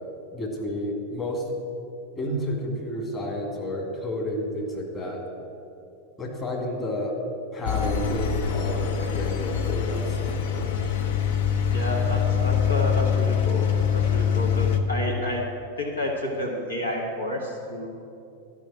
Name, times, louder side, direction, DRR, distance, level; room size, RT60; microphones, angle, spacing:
voice 1, 0.3-1.4 2.1-5.2 6.2-7.1 7.5-10.7, left 1 dB, 20° left, -2 dB, 2.6 m, -31 dB
Engine, 7.6-14.8, left 7 dB, 55° left, 0.9 m, -24 dB
voice 2, 11.7-15.4 15.8-17.9, left 1 dB, 75° left, 0 dB, 1.4 m, -30 dB
13.0 x 5.6 x 8.9 m, 2.7 s
figure-of-eight pair, 90°, 0 cm